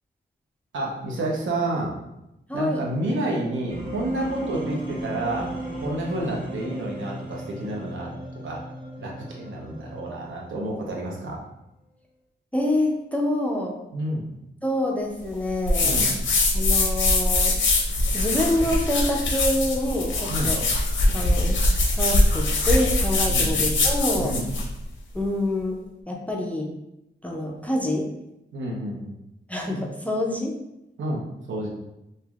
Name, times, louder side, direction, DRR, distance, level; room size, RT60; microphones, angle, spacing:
voice 1, 0.7-1.9 2.5-5.5 5.8-8.1 8.4-8.6 9.0-11.4 13.9-14.2 15.8-16.1 20.3-20.5 23.3-23.5 24.1-24.5 28.5-29.1 31.0-31.2 31.5-31.7, right 1 dB, 90° right, -2 dB, 0.8 m, -29 dB
voice 2, 2.5-2.8 12.5-13.8 14.6-16.1 16.5-17.6 18.1-20.6 21.1-21.6 21.9-24.3 25.1-25.8 26.1-26.7 27.2-28.1 29.5-30.5, left 1 dB, 5° left, 0 dB, 0.3 m, -26 dB
sound 1, 3.7-10.7, right 1 dB, 30° right, 0.8 m, -36 dB
sound 2, 15.7-24.7, left 2 dB, 85° left, 0.6 m, -22 dB
3.3 x 2.6 x 2.3 m, 0.89 s
wide cardioid pair, 175°, 19 cm